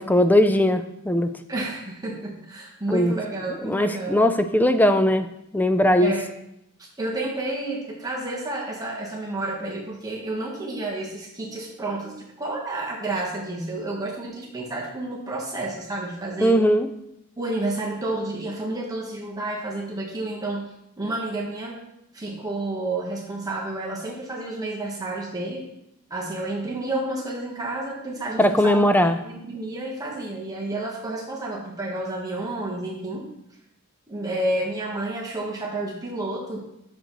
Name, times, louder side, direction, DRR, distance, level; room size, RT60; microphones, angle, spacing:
voice 1, 0.0-1.3 2.9-3.1 3.6-5.3 5.5-6.1 16.4-16.9 28.4-29.2, left 1 dB, 10° left, 9 dB, 0.4 m, -19 dB
voice 2, 1.5-4.2 6.0-6.2 6.8-16.6 17.4-20.7 21.0-21.8 22.1-25.6 26.1-28.9 29.2-33.3 34.1-36.7, right 2 dB, 15° right, -3 dB, 1.1 m, -30 dB
10.0 x 6.6 x 3.0 m, 0.82 s
head